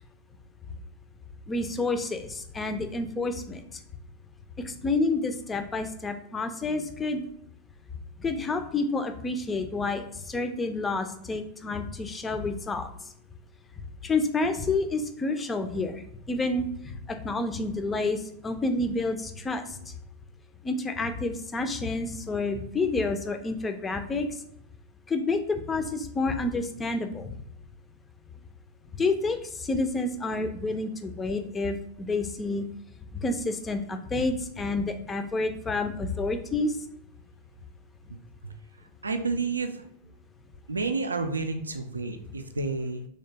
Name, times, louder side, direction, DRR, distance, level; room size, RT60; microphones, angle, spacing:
voice 1, 1.5-3.8 4.6-7.2 8.2-12.9 14.0-19.8 20.6-24.4 25.1-27.3 28.9-32.6 33.1-36.8, left 3 dB, 15° left, 7 dB, 0.4 m, -29 dB
voice 2, 38.4-39.9 40.7-43.1, right 3 dB, 75° right, 7 dB, 0.3 m, -31 dB
3.3 x 2.8 x 2.8 m, 0.71 s
figure-of-eight pair, 90°, 0 cm